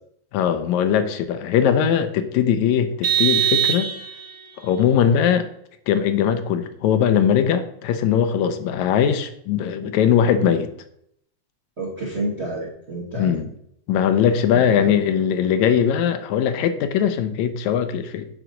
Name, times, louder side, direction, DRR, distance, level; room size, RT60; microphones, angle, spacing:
voice 1, 0.3-3.9 4.6-5.5 5.9-10.7 13.2-13.5 13.9-18.3, left 8 dB, 80° left, 2.0 m, -20 dB
Vehicle horn car horn honking, 3.0-4.4, right 10 dB, 60° right, 1.4 m, -21 dB
voice 2, 11.8-13.4 14.5-14.9, right 2 dB, 80° right, 0.6 m, -30 dB
7.8 x 3.9 x 6.2 m
omnidirectional pair, 3.4 m